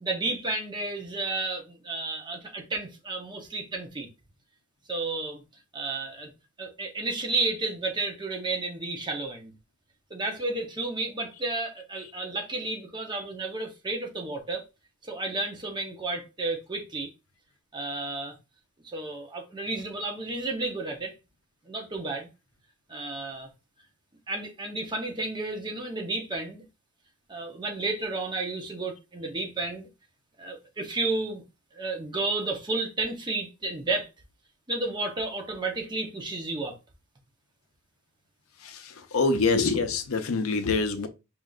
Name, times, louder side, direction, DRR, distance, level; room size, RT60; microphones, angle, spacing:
voice 1, 0.0-4.1 4.9-5.4 5.7-6.3 6.6-9.5 10.1-14.6 15.0-17.1 17.7-18.4 18.8-21.1 21.7-22.3 22.9-23.5 24.3-26.6 27.3-29.9 30.4-31.4 31.7-34.1 34.7-36.8, right 2 dB, 20° right, 0.8 m, -32 dB
voice 2, 38.6-41.1, left 4 dB, 70° left, 0.6 m, -25 dB
4.8 x 2.6 x 2.3 m
head